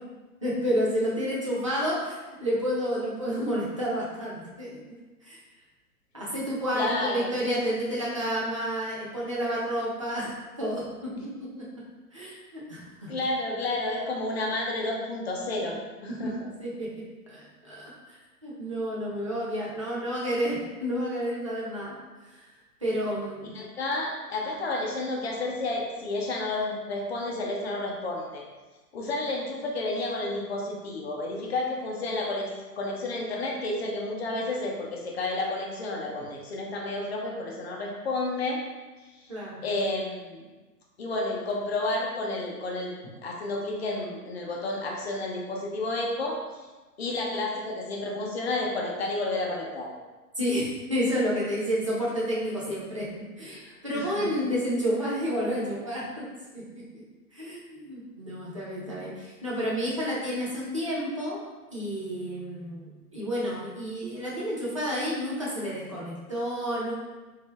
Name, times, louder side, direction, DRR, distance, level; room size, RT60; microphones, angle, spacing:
voice 1, 0.4-5.4 6.1-10.3 10.6-11.1 11.4-11.5 12.1-13.1 15.6-15.7 16.2-16.3 16.6-16.9 17.3-22.0 22.2-22.4 22.8-23.5 39.3-39.6 50.4-53.1 53.4-56.2 56.5-57.0 57.3-61.4 61.7-66.9, equal, 25° right, -7 dB, 0.3 m, -30 dB
voice 2, 6.7-7.3 13.1-15.8 16.0-16.5 23.5-28.4 28.9-32.5 32.8-38.6 39.6-40.4 41.0-42.9 43.2-46.4 47.0-49.9 53.9-54.5, left 2 dB, 45° left, -1 dB, 0.7 m, -31 dB
3.6 x 2.6 x 2.4 m, 1.2 s
figure-of-eight pair, 120°, 46 cm